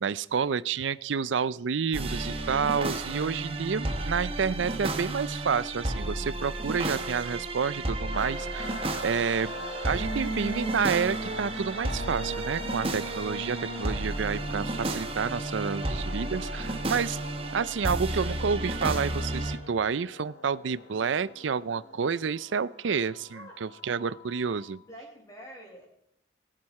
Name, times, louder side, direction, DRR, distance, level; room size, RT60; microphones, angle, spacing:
voice 1, 0.0-8.7 9.0-9.5 9.8-17.2 17.5-24.8, right 6 dB, 80° right, 19 dB, 0.5 m, -29 dB
sound 1, 1.9-19.6, right 2 dB, 30° right, 1.1 m, -32 dB
sound 2, 8.1-24.8, left 2 dB, 65° left, 2.7 m, -45 dB
voice 2, 24.8-25.9, equal, 20° left, -2 dB, 4.4 m, -46 dB
21.5 x 7.5 x 4.8 m, 0.75 s
head